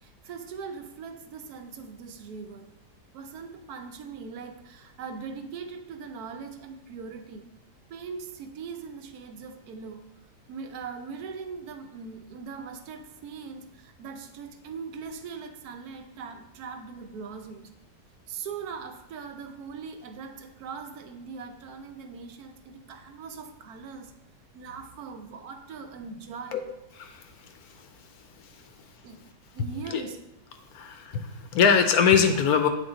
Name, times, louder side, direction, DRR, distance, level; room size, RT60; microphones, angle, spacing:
voice 1, 0.0-2.7 3.1-7.4 7.9-10.1 10.5-17.7 18.3-24.1 24.5-26.6 29.0-29.3 29.5-30.2, right 5 dB, 70° right, 7 dB, 1.1 m, -40 dB
voice 2, 30.7-32.7, left 6 dB, 70° left, 7 dB, 1.0 m, -22 dB
8.3 x 3.6 x 3.9 m, 0.90 s
omnidirectional pair, 1.8 m